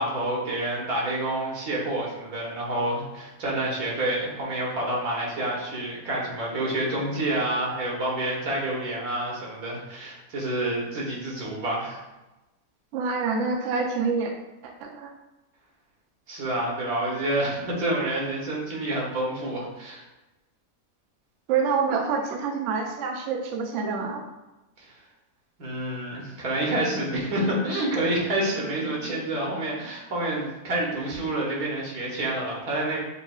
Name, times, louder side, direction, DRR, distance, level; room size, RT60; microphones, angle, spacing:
voice 1, 0.0-12.0 16.3-20.0 24.8-24.9 25.6-33.0, right 1 dB, 85° right, -4 dB, 1.6 m, -28 dB
voice 2, 12.9-14.3 14.6-15.1 21.5-24.2, right 5 dB, 65° right, 3 dB, 0.8 m, -27 dB
7.0 x 2.8 x 2.3 m, 1.0 s
omnidirectional pair, 1.5 m